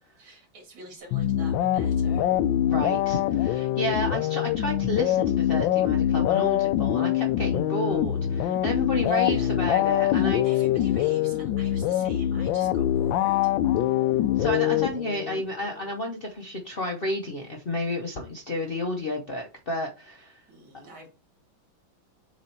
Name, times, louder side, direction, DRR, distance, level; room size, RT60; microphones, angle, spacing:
voice 1, 0.2-2.3 9.1-9.6 10.3-13.5 20.5-21.1, right 1 dB, 80° right, 1 dB, 2.8 m, -46 dB
sound 1, 1.1-15.4, left 12 dB, 75° left, 1.2 m, -24 dB
voice 2, 2.7-10.5 14.4-20.4, left 1 dB, 50° left, 1 dB, 0.6 m, -31 dB
7.3 x 3.1 x 4.3 m, 0.32 s
omnidirectional pair, 2.2 m